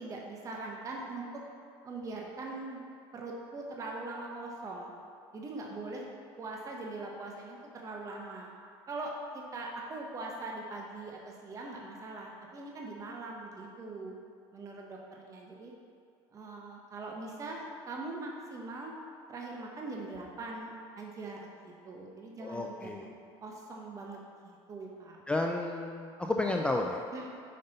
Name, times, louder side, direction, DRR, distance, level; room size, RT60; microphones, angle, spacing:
voice 1, 0.0-1.4 1.8-2.8 3.1-4.9 5.3-6.0 6.4-8.5 8.9-14.1 14.5-15.7 16.3-19.0 19.3-23.2 23.4-25.2 27.1-27.3, right 2 dB, 30° right, -1 dB, 0.8 m, -42 dB
voice 2, 22.4-23.1 25.3-27.0, left 2 dB, 10° left, 1 dB, 0.3 m, -32 dB
5.4 x 5.3 x 3.9 m, 2.4 s
supercardioid pair, 115°, 11 cm